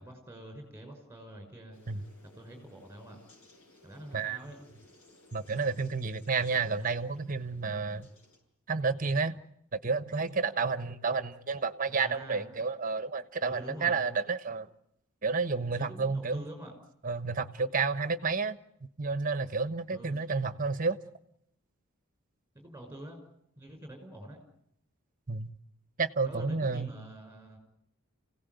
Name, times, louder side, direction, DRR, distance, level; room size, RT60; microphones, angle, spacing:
voice 1, 0.0-2.1 2.3-3.2 3.8-4.6 11.9-12.7 13.4-14.1 15.8-16.7 19.9-20.1 22.5-23.2 23.6-24.4 26.3-27.6, right 1 dB, 10° right, 5.8 m, -46 dB
sound 1, 1.7-8.4, left 2 dB, 90° left, 7.6 m, -60 dB
voice 2, 5.3-8.1 8.7-9.4 9.7-14.7 15.2-16.5 17.0-18.6 19.0-21.0 25.3-25.5 26.0-27.0, right 4 dB, 40° right, 1.2 m, -30 dB
29.0 x 17.5 x 9.4 m
head